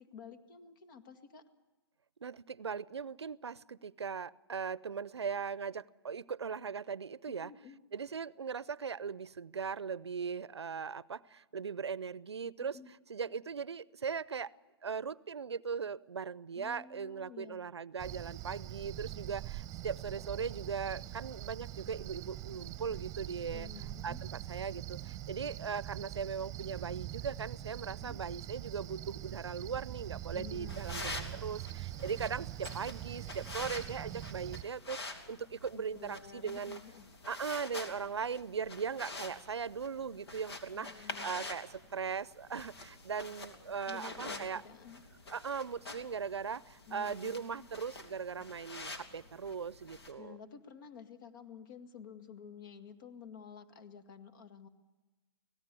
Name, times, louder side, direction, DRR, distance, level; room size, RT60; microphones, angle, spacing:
voice 1, 0.0-1.4 7.3-7.8 12.7-12.9 16.5-17.6 23.5-24.2 27.9-28.2 30.3-31.5 35.7-37.1 40.7-41.5 43.9-45.0 46.9-47.7 50.2-54.7, left 7 dB, 50° left, 10 dB, 2.0 m, -51 dB
voice 2, 2.2-7.5 7.9-12.8 13.1-14.5 14.8-23.7 24.0-36.8 37.3-44.6 45.3-50.4, right 6 dB, 85° right, 21 dB, 0.6 m, -39 dB
Cricket, 18.0-34.6, right 14 dB, 25° right, 1.0 m, -43 dB
sound 1, 30.7-50.1, left 2 dB, 75° left, 3.2 m, -47 dB
25.0 x 17.5 x 6.9 m, 1.2 s
hypercardioid pair, 125°, 14 cm